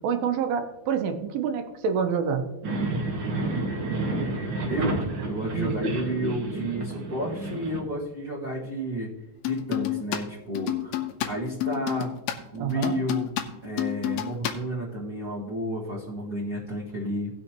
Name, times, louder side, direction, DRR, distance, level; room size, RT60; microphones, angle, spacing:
voice 1, 0.0-2.4 5.5-5.7 12.6-13.0, right 6 dB, 80° right, 6 dB, 2.6 m, -27 dB
sound 1, 2.6-7.8, right 2 dB, 55° right, 1.3 m, -30 dB
voice 2, 4.7-5.0 5.3-9.1 9.4-12.1 12.5-13.3 13.6-17.3, right 1 dB, 35° right, -7 dB, 1.6 m, -32 dB
sound 2, 9.4-10.2 10.5-14.5, left 13 dB, 85° left, 2.7 m, -29 dB
18.0 x 6.4 x 2.9 m, 0.98 s
omnidirectional pair, 4.2 m